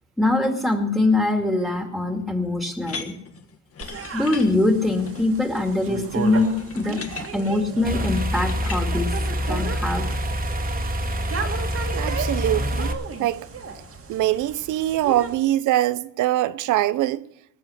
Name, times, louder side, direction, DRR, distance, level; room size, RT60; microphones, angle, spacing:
voice 1, 0.2-3.2 4.1-7.0 7.3-9.1 9.5-10.1, left 2 dB, ahead, 2.4 m, -23 dB
sound 1, 2.8-8.8, left 5 dB, 50° left, 1.6 m, -39 dB
sound 2, 3.8-15.3, right 4 dB, 50° right, 1.9 m, -35 dB
sound 3, 7.8-12.9, equal, 30° right, 1.8 m, -26 dB
voice 2, 11.9-13.5 14.1-17.2, right 14 dB, 80° right, 0.7 m, -23 dB
19.0 x 7.5 x 6.5 m
cardioid pair, 90°, 30 cm